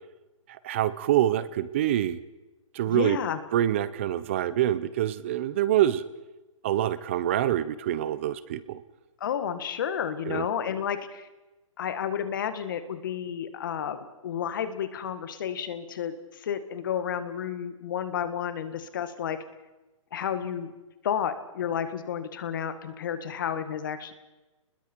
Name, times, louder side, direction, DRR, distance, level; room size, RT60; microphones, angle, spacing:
voice 1, 0.6-2.2 2.7-3.2 3.5-6.0 6.6-8.8 10.3-10.5, right 12 dB, 25° right, 16 dB, 0.6 m, -25 dB
voice 2, 2.9-3.4 9.2-11.3 11.8-19.4 20.1-20.7 21.0-24.1, left 8 dB, 40° left, 10 dB, 1.8 m, -31 dB
30.0 x 21.0 x 4.6 m, 1.1 s
hypercardioid pair, 175°, 17 cm